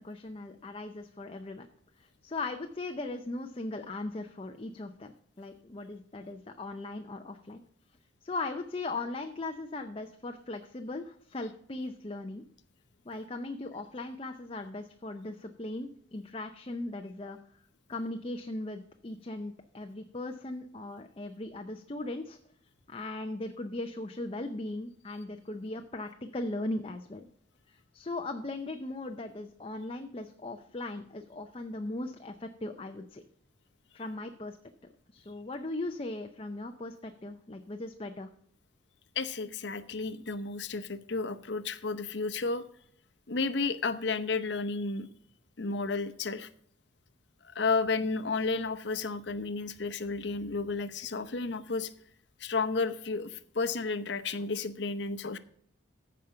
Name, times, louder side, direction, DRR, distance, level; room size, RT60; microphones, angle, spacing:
voice 1, 0.0-1.7 2.0-5.1 5.4-7.6 8.2-12.4 13.1-17.4 17.9-22.4 22.9-27.3 27.7-33.2 33.9-34.6 35.1-38.3, left 2 dB, 30° left, 5 dB, 0.6 m, -38 dB
voice 2, 39.2-42.6 43.3-45.1 45.6-46.5 47.5-51.9 52.4-55.4, left 4 dB, 65° left, 10 dB, 0.8 m, -32 dB
14.5 x 5.1 x 5.6 m, 0.64 s
head